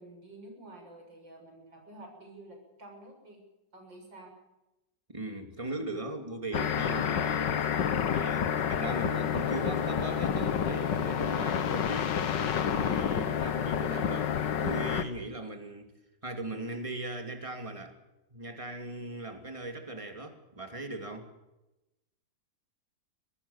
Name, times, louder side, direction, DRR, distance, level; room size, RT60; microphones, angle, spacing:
voice 1, 0.0-3.4 3.7-4.3, right 1 dB, 90° right, 2 dB, 7.9 m, -50 dB
voice 2, 5.1-7.7 8.0-12.4 12.6-15.9 16.2-18.0 18.3-21.3, right 2 dB, 15° right, 6 dB, 2.8 m, -39 dB
sound 1, 6.5-15.0, left 8 dB, 75° left, 1.9 m, -29 dB
24.5 x 18.5 x 7.3 m, 0.96 s
omnidirectional pair, 1.9 m